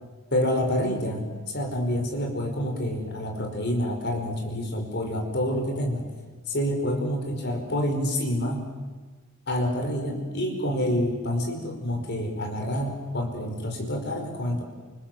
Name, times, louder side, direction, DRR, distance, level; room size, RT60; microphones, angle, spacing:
voice 1, 0.3-6.1 6.5-8.7 9.5-14.6, equal, 50° left, 4 dB, 4.9 m, -27 dB
29.0 x 27.0 x 7.7 m, 1.3 s
head